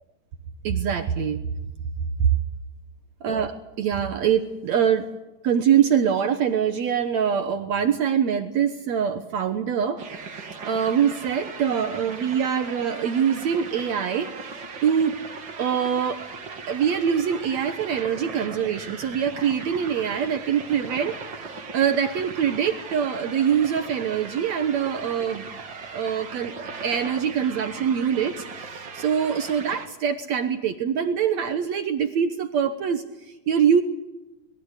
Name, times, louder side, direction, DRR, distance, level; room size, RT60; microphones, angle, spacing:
voice 1, 0.6-1.4 3.2-5.1 5.4-10.0 10.6-14.3 14.8-15.1 15.6-16.2 16.7-25.5 25.9-33.8, right 8 dB, 75° right, 8 dB, 1.6 m, -24 dB
sound 1, 10.0-29.9, right 5 dB, 40° right, 1.8 m, -38 dB
25.0 x 21.0 x 8.2 m, 1.0 s
omnidirectional pair, 4.8 m